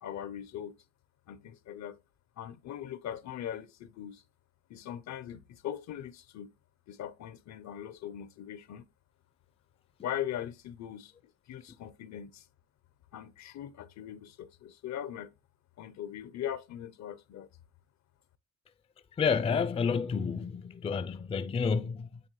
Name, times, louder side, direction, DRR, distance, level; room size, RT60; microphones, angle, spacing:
voice 1, 0.0-0.8 1.3-2.0 2.4-4.2 4.7-6.5 6.9-8.8 10.0-12.5 13.1-15.3 15.8-17.5, left 10 dB, 65° left, 0.6 m, -40 dB
voice 2, 19.1-22.2, left 5 dB, 20° left, 0.3 m, -30 dB
9.3 x 3.5 x 3.0 m
cardioid pair, 90°, 30 cm